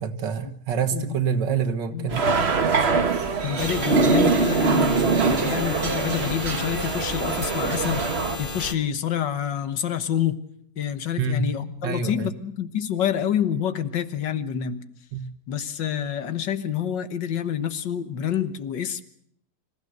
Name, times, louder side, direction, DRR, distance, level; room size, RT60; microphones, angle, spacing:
voice 1, 0.0-2.3 11.2-11.5 11.8-12.3 15.1-15.3, right 6 dB, 75° right, 9 dB, 2.2 m, -26 dB
voice 2, 1.9-2.5 3.4-10.4 10.8-14.8 15.5-19.0, left 9 dB, 80° left, 12 dB, 2.0 m, -28 dB
Ambient sound inside cafe dining, 2.1-8.4, right 4 dB, 40° right, 1.4 m, -23 dB
sound 1, 3.6-8.7, left 2 dB, 30° left, 1.8 m, -33 dB
26.0 x 15.5 x 8.0 m, 0.70 s
omnidirectional pair, 1.9 m